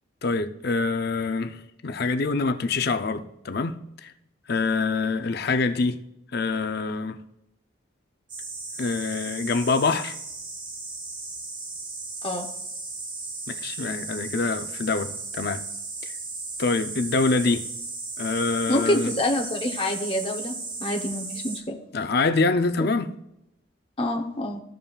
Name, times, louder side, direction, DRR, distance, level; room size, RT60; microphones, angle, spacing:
voice 1, 0.2-4.1 4.5-6.0 6.3-7.2 8.8-10.2 13.5-15.6 16.0-16.1 16.6-17.7 18.2-19.1 21.9-23.1, left 3 dB, 50° left, 0.5 m, -25 dB
sound 1, 8.3-21.6, right 3 dB, 25° right, 1.0 m, -35 dB
voice 2, 18.7-21.8 24.0-24.6, left 1 dB, 25° left, 0.8 m, -27 dB
15.0 x 5.5 x 2.4 m
head